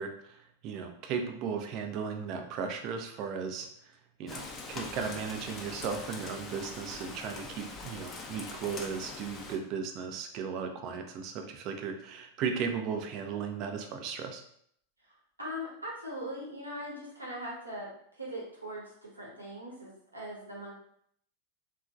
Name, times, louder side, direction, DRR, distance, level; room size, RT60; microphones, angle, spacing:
voice 1, 0.0-3.7 4.2-14.4, right 6 dB, 40° right, 5 dB, 0.4 m, -36 dB
Rain, 4.3-9.6, left 3 dB, 25° left, 0.4 m, -43 dB
voice 2, 15.1-20.7, equal, 85° right, -5 dB, 0.9 m, -41 dB
2.8 x 2.3 x 2.4 m, 0.68 s
figure-of-eight pair, 90°, 0 cm